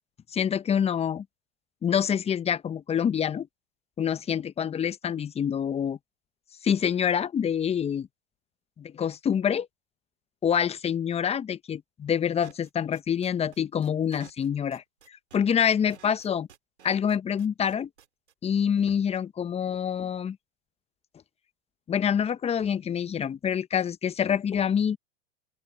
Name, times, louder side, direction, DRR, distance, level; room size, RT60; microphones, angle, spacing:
voice 1, 0.3-1.2 1.8-3.5 4.0-6.0 6.6-8.1 8.8-9.7 10.4-16.5 16.8-17.9 18.4-20.4 21.9-25.0, left 8 dB, 20° left, 1.0 m, -26 dB
sound 1, 12.4-18.3, right 9 dB, 85° right, 3.1 m, -53 dB
open air
hypercardioid pair, 105°, 33 cm